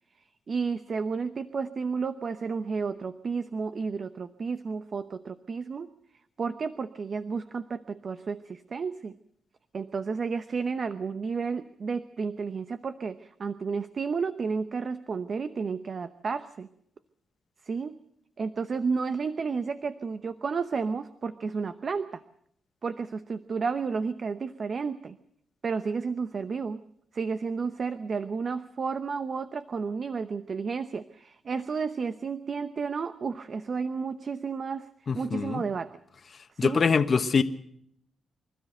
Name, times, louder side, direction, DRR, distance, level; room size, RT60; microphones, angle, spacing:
voice 1, 0.5-5.9 6.4-9.2 9.7-16.7 17.6-18.0 18.4-22.2 22.8-25.2 25.6-26.8 27.1-34.9 35.1-36.0 36.5-36.9, right 5 dB, 50° right, 0.8 m, -32 dB
voice 2, 35.1-35.6 36.6-37.4, left 5 dB, 50° left, 1.3 m, -24 dB
25.0 x 13.0 x 7.9 m
cardioid pair, 75°, 0 cm